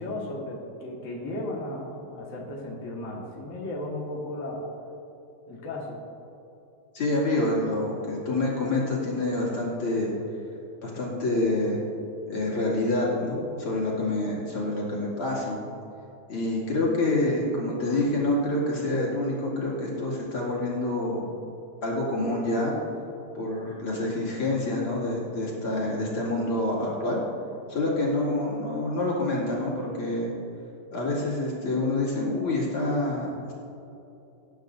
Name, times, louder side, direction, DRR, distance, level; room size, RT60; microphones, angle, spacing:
voice 1, 0.0-4.7 5.5-6.0, left 1 dB, 40° left, -3 dB, 1.9 m, -35 dB
voice 2, 6.9-10.1 10.8-11.8 12.3-15.6 16.3-21.3 21.8-22.7 23.3-27.2 27.7-30.3 30.9-33.6, left 2 dB, 75° left, -5 dB, 3.3 m, -27 dB
19.0 x 9.7 x 2.6 m, 3.0 s
omnidirectional pair, 2.4 m